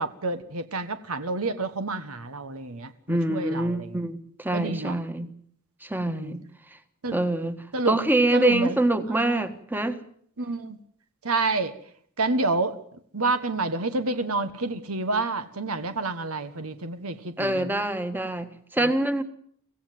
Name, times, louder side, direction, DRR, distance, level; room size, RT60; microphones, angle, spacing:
voice 1, 0.0-3.8 4.5-5.0 6.1-6.3 7.0-7.2 7.7-8.0 8.3-8.7 9.3-9.4 10.4-10.8 11.2-11.7 12.2-12.8 13.1-17.7, right 3 dB, 80° right, 1.4 m, -28 dB
voice 2, 3.1-5.3 5.8-6.4 7.1-7.6 7.9-10.0 17.4-19.2, right 1 dB, 10° right, 1.5 m, -25 dB
25.0 x 16.0 x 9.3 m
head